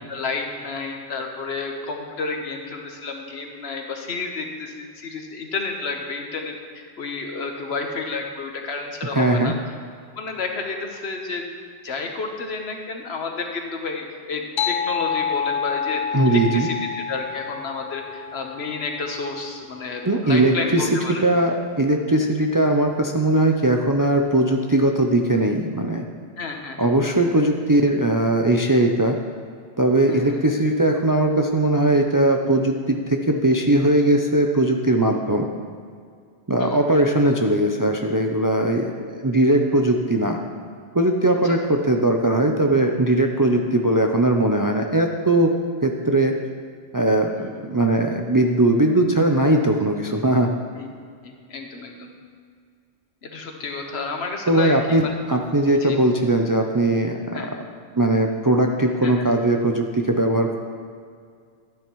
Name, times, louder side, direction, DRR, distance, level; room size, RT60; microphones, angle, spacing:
voice 1, 0.1-9.5 10.2-11.4 11.8-21.2 26.4-26.9 30.1-30.4 36.6-37.0 41.4-41.6 47.3-47.6 50.8-50.9 51.2-52.1 53.2-55.1 55.8-56.0 57.3-57.5 59.0-59.3, left 4 dB, 85° left, 3 dB, 1.3 m, -31 dB
voice 2, 9.1-9.5 16.1-16.7 20.1-20.9 21.2-26.0 26.8-29.2 29.8-35.5 36.5-40.4 40.9-45.5 45.8-46.4 46.9-50.5 54.5-57.6 58.0-60.6, right 1 dB, 30° right, 3 dB, 0.4 m, -19 dB
sound 1, 14.6-19.5, left 7 dB, 65° left, 0.8 m, -28 dB
12.0 x 10.0 x 3.1 m, 2.2 s
omnidirectional pair, 1.1 m